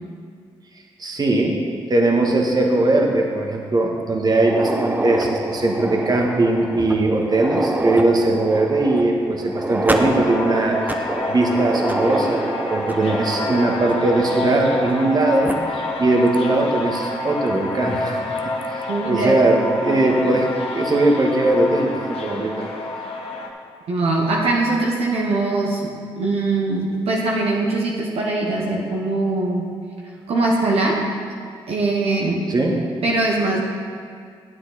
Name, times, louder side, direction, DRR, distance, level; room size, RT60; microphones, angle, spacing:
voice 1, 1.0-1.6 1.9-10.8 11.3-15.5 16.0-18.2 18.7-20.5 20.7-22.6 32.5-32.8, right 2 dB, 40° right, 1 dB, 1.5 m, -19 dB
sound 1, 4.3-15.1 15.4-15.5 16.3-16.4 17.0-17.1 18.4-18.7, right 1 dB, 15° right, 0.9 m, -27 dB
sound 2, 10.0-23.5, left 2 dB, 65° left, 1.2 m, -28 dB
voice 2, 18.9-19.6 19.8-20.3 23.9-29.7 30.3-31.0 31.7-32.4 33.0-33.6, right 2 dB, 70° right, -2 dB, 1.2 m, -22 dB
9.5 x 8.0 x 4.1 m, 2.2 s
supercardioid pair, 50°, 11 cm